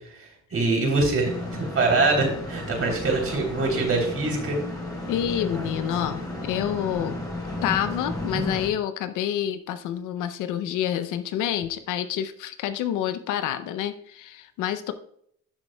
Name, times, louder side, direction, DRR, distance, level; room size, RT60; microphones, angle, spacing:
voice 1, 0.1-4.6, right 3 dB, 50° right, 1 dB, 3.3 m, -24 dB
sound 1, 1.2-8.7, left 1 dB, 10° left, 3.4 m, -33 dB
voice 2, 5.1-7.2 7.6-14.9, left 10 dB, 90° left, 11 dB, 0.6 m, -28 dB
12.0 x 6.3 x 2.2 m, 0.67 s
cardioid pair, 90°, 30 cm